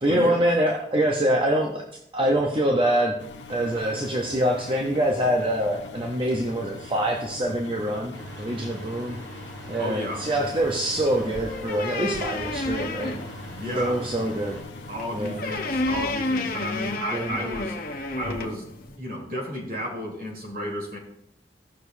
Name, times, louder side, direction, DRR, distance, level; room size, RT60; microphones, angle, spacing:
voice 1, 0.0-1.8 2.1-9.2 9.7-13.2 13.8-14.6 15.1-15.4 17.1-17.4, right 1 dB, 30° right, 1 dB, 0.7 m, -25 dB
Engine, 3.2-17.0, left 4 dB, 85° left, 0.9 m, -43 dB
sound 1, 8.1-14.6, right 1 dB, 70° right, 4.0 m, -42 dB
voice 2, 9.8-10.2 13.5-14.0 14.9-17.7 18.2-18.7 19.0-21.0, equal, 55° right, -3 dB, 3.3 m, -32 dB
sound 2, 10.2-19.0, left 2 dB, 50° left, 0.9 m, -32 dB
17.0 x 6.4 x 2.7 m, 0.76 s
head